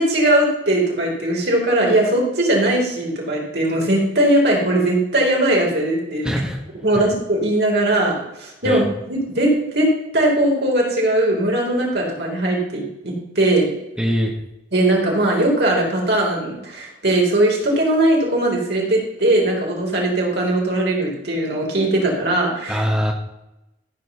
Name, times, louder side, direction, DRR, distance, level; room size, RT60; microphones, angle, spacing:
voice 1, 0.0-6.3 6.8-9.9 10.1-13.7 14.7-22.8, right 1 dB, 60° right, -2 dB, 3.8 m, -19 dB
voice 2, 6.2-6.6 6.9-7.1 8.6-8.8 14.0-14.4 22.7-23.1, equal, 5° right, 1 dB, 1.3 m, -22 dB
14.0 x 5.2 x 6.8 m, 0.91 s
head